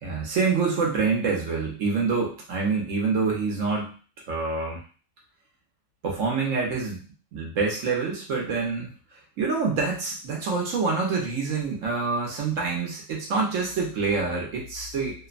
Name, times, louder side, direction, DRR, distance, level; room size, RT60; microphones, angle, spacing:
voice 1, 0.0-3.9 4.3-4.8 6.0-7.0 7.3-8.9 9.4-15.3, right 4 dB, 70° right, -2 dB, 1.1 m, -26 dB
2.9 x 2.1 x 2.4 m, 0.38 s
omnidirectional pair, 1.4 m